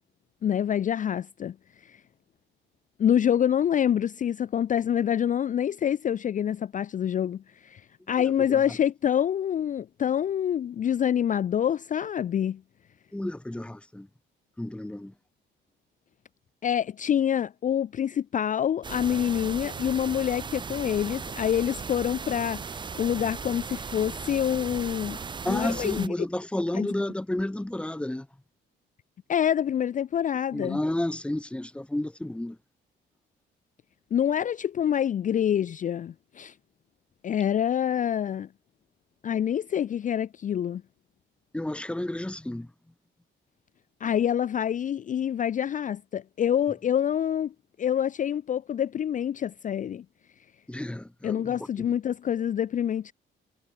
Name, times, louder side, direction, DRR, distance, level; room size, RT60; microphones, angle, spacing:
voice 1, 0.4-1.5 1.8-2.0 3.0-12.6 16.6-22.7 22.9-25.2 25.5-26.1 26.7-26.9 29.3-30.8 34.1-36.5 37.2-38.5 39.2-40.8 44.0-47.5 47.8-50.0 51.2-53.1, left 9 dB, 40° left, 0.4 m, -26 dB
voice 2, 8.2-8.6 13.1-14.1 14.6-15.1 25.4-28.3 30.5-32.6 41.5-42.7 50.7-51.9, left 1 dB, 5° left, 0.9 m, -31 dB
sound 1, 18.8-26.1, right 5 dB, 25° right, 0.5 m, -37 dB
cardioid pair, 90°, 20 cm